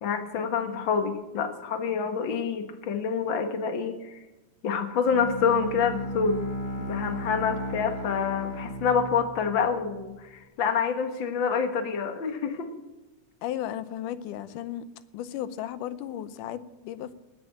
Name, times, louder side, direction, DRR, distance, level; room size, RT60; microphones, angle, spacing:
voice 1, 0.0-4.2 4.6-6.4 6.8-12.7, left 6 dB, 50° left, 8 dB, 1.5 m, -27 dB
Bowed string instrument, 5.1-10.1, equal, 30° left, 0.9 m, -35 dB
voice 2, 13.4-14.9 15.1-17.1, left 11 dB, 80° left, 15 dB, 2.3 m, -35 dB
19.0 x 8.7 x 7.2 m, 1.1 s
omnidirectional pair, 3.8 m